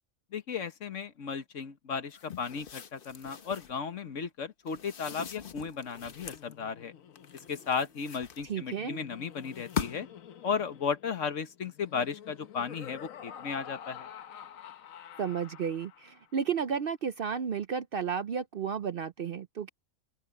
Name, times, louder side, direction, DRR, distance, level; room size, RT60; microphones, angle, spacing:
voice 1, 0.3-6.9 7.5-10.1 10.4-14.1, left 6 dB, 65° left, 1.5 m, -35 dB
sound 1, 2.1-3.8 4.7-6.5 7.2-8.8 9.4-10.2, left 7 dB, 45° left, 1.0 m, -41 dB
Laughter, 5.9-16.3, left 9 dB, 80° left, 1.3 m, -49 dB
voice 2, 8.4-9.0 15.2-19.7, right 7 dB, 55° right, 0.7 m, -33 dB
open air
omnidirectional pair, 1.4 m